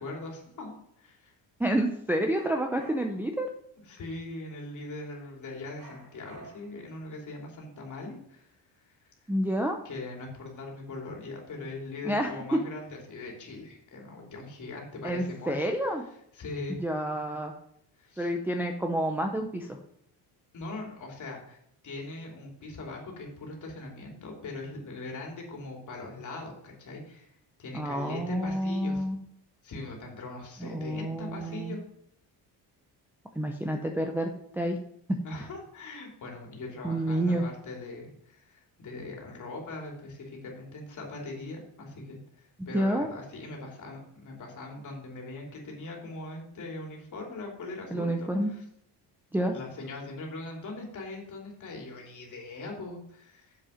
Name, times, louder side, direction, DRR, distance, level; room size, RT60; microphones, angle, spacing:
voice 1, 0.0-1.3 3.9-8.5 8.8-9.0 9.8-15.6 16.3-16.8 18.0-18.3 20.5-21.6 21.8-29.0 29.6-31.8 35.2-48.6 49.5-53.6, left 2 dB, 45° left, 0 dB, 3.0 m, -41 dB
voice 2, 1.6-3.5 9.3-9.8 12.0-12.6 15.0-16.0 16.8-17.5 18.2-19.8 27.7-29.2 30.6-31.8 33.4-34.8 35.1-35.2 36.8-37.4 42.7-43.1 47.9-48.5 49.3-49.5, right 1 dB, 5° right, 2 dB, 0.6 m, -29 dB
sound 1, 2.3-3.3 5.8-6.9, right 2 dB, 70° right, 4.3 m, -51 dB
7.6 x 7.3 x 5.1 m, 0.72 s
cardioid pair, 160°, 43 cm